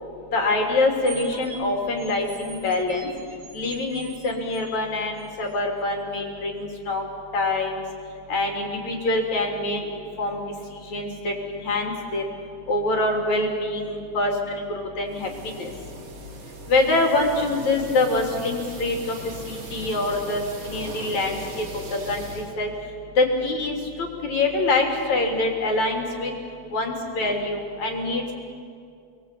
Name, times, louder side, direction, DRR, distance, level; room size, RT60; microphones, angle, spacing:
voice 1, 0.3-3.1 3.5-7.1 7.3-7.8 8.3-10.4 10.7-12.3 12.7-15.7 16.7-19.2 19.5-21.7 22.1-22.7 23.2-26.3 26.7-28.4, left 2 dB, 65° left, 1 dB, 4.6 m, -25 dB
sound 1, 1.0-5.6, right 5 dB, 40° right, 2.4 m, -44 dB
sound 2, 15.1-22.5, right 2 dB, 80° right, 5.0 m, -39 dB
30.0 x 21.5 x 8.5 m, 2.4 s
omnidirectional pair, 3.5 m